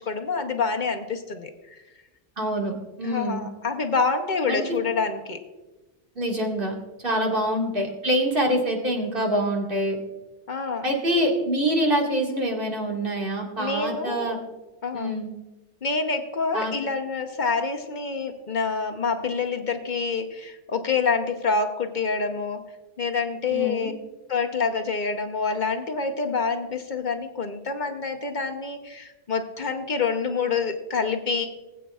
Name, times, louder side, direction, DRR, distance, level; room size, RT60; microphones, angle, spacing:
voice 1, 0.1-1.8 3.0-5.4 7.1-7.2 10.5-10.9 13.6-14.3 14.8-15.2 15.8-22.6 23.0-23.9 24.3-31.5, left 4 dB, 45° left, 6 dB, 0.9 m, -27 dB
voice 2, 2.4-2.7 3.0-3.5 4.5-4.6 6.2-6.7 7.0-10.0 10.8-14.4 14.9-15.3 16.5-16.7 23.5-23.9, equal, 50° right, -1 dB, 2.0 m, -25 dB
20.0 x 8.4 x 2.3 m, 1.1 s
omnidirectional pair, 1.2 m